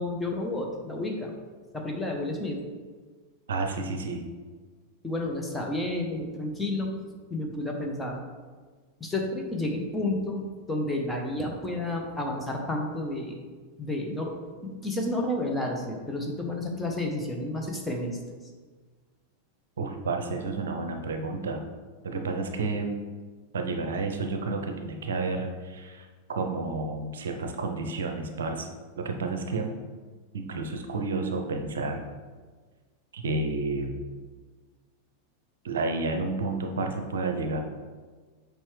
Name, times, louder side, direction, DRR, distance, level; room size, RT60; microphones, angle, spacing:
voice 1, 0.0-1.3 1.7-2.6 5.0-6.9 7.3-8.2 9.0-13.4 13.8-18.2, left 1 dB, 10° left, 0 dB, 0.9 m, -31 dB
voice 2, 3.5-4.2 19.8-21.6 22.0-22.9 23.5-28.7 29.0-29.8 30.3-32.1 33.1-34.1 35.6-37.6, right 3 dB, 65° right, 4 dB, 0.6 m, -31 dB
7.2 x 4.6 x 3.2 m, 1.4 s
figure-of-eight pair, 90°, 0 cm